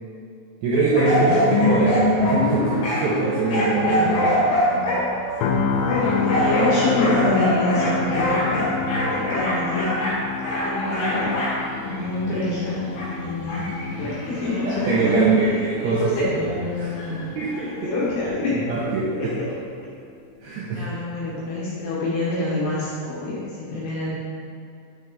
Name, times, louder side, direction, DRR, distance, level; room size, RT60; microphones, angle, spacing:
voice 1, 0.6-4.4 14.6-16.0 16.4-16.9 17.3-17.9 18.5-19.3 20.4-20.9, right 3 dB, 80° right, -6 dB, 2.5 m, -23 dB
sound 1, 0.9-15.3 15.8-17.6 18.2-18.3, left 1 dB, 55° left, 2.6 m, -24 dB
voice 2, 1.2-1.7 5.8-8.6 9.1-9.9 10.6-11.3 11.8-12.9 13.1-13.7 13.9-15.3 15.8-16.2 17.7-18.6 19.1-19.3 20.7-24.1, left 2 dB, 70° left, -8 dB, 2.6 m, -26 dB
sound 2, 5.4-19.4 19.8-20.0, left 5 dB, 90° left, 3.3 m, -30 dB
7.2 x 6.1 x 3.6 m, 2.5 s
omnidirectional pair, 5.9 m